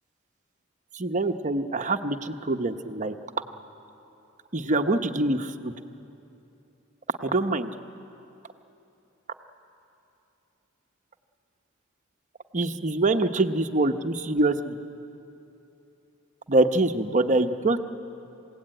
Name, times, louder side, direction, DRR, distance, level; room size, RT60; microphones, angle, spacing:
voice 1, 1.0-3.1 4.5-5.7 7.2-7.7 12.5-14.7 16.5-17.8, right 2 dB, 35° right, 6 dB, 0.9 m, -24 dB
28.0 x 17.0 x 9.1 m, 2.9 s
head